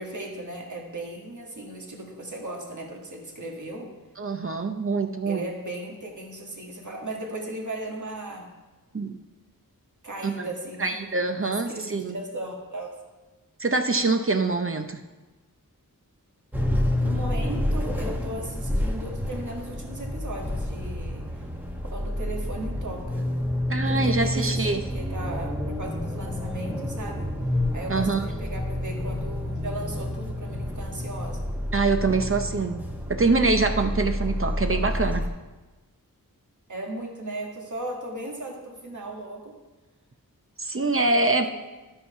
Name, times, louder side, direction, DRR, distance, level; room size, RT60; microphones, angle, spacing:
voice 1, 0.0-4.0 5.3-8.5 10.0-11.0 11.4-13.0 17.0-21.4 21.9-23.3 23.9-27.3 27.7-31.5 36.7-39.6 40.9-41.5, right 1 dB, 55° right, 0 dB, 1.9 m, -37 dB
voice 2, 4.2-5.4 8.9-9.2 10.2-10.5 10.8-12.2 13.6-15.0 23.7-24.8 27.9-28.3 31.7-32.8 33.1-35.2 40.6-41.5, right 3 dB, 40° right, 6 dB, 0.7 m, -24 dB
sound 1, 16.5-35.3, left 1 dB, 5° right, 1.1 m, -29 dB
12.5 x 5.7 x 5.5 m, 1.2 s
wide cardioid pair, 80°, 35 cm